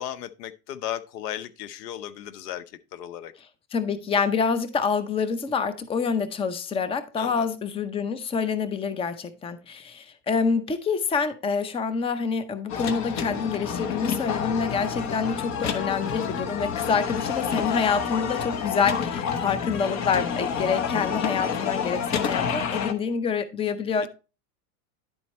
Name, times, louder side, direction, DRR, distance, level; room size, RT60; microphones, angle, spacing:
voice 1, 0.0-3.3 7.2-7.5 16.8-17.0 24.0-24.1, left 11 dB, 75° left, 0.9 m, -36 dB
voice 2, 3.7-24.1, left 5 dB, 10° left, 0.6 m, -27 dB
sound 1, 12.7-22.9, left 7 dB, 35° left, 1.0 m, -29 dB
11.0 x 4.4 x 4.2 m
supercardioid pair, 115°, 48 cm